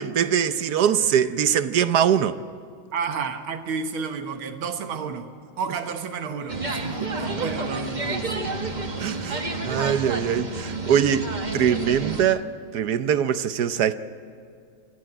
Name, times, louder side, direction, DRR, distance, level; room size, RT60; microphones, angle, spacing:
voice 1, 0.0-2.4 9.0-9.4 9.6-11.3 11.5-12.4 12.7-14.0, right 9 dB, 65° right, 1.1 m, -22 dB
voice 2, 2.9-5.3 5.6-8.3, right 5 dB, 90° right, 2.1 m, -31 dB
washington walkingto ushistory, 6.5-12.2, right 3 dB, 25° right, 1.2 m, -30 dB
26.0 x 14.5 x 9.0 m
omnidirectional pair, 2.2 m